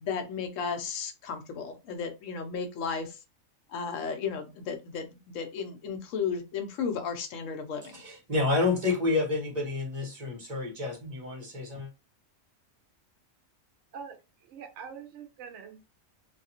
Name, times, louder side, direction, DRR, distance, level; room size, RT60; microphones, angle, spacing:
voice 1, 0.0-3.2 3.7-7.9, left 6 dB, 75° left, 1.0 m, -34 dB
voice 2, 7.9-11.9, left 3 dB, 35° right, 1.0 m, -29 dB
voice 3, 13.9-15.9, right 6 dB, 70° right, 0.8 m, -44 dB
2.7 x 2.4 x 2.8 m
omnidirectional pair, 1.4 m